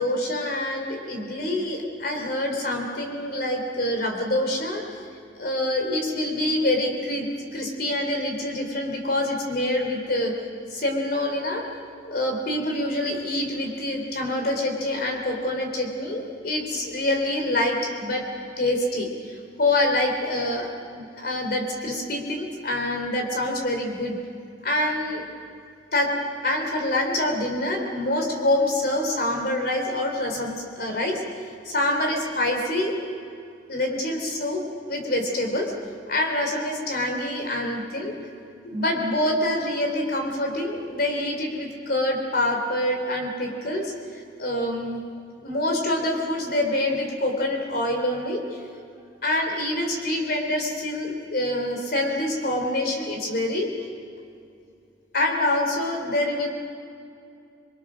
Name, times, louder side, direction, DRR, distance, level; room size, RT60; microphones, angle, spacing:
voice 1, 0.0-5.0 5.4-7.3 7.5-10.3 10.7-11.7 12.0-18.3 18.6-24.2 24.6-25.2 25.9-26.1 26.4-31.2 31.7-33.0 33.7-34.6 34.9-35.7 36.1-38.1 38.6-45.0 45.4-48.6 49.2-53.7 55.1-56.5, left 1 dB, 55° left, 2 dB, 3.6 m, -26 dB
27.0 x 23.0 x 6.4 m, 2.5 s
head